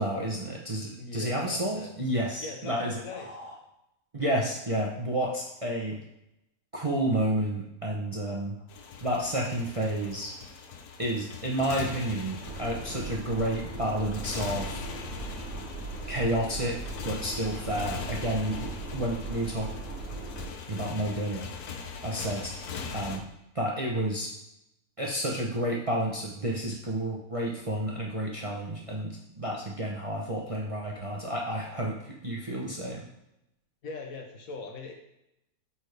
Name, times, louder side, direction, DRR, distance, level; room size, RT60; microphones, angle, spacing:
voice 1, 0.0-3.5 4.1-6.0 6.7-8.5 9.0-10.3 11.0-14.8 16.1-16.8 17.0-19.7 20.7-21.5 22.0-22.5 22.9-23.2 23.5-24.3 25.0-33.0, right 1 dB, 30° right, -2 dB, 0.7 m, -30 dB
voice 2, 1.0-1.9 2.4-3.3 33.8-34.9, left 4 dB, 70° left, 2 dB, 1.5 m, -40 dB
Motorcycle, 8.7-23.2, left 6 dB, 85° left, 1.2 m, -41 dB
sound 1, 12.4-20.5, right 3 dB, 50° right, 1.5 m, -39 dB
8.5 x 4.3 x 3.4 m, 0.86 s
omnidirectional pair, 1.6 m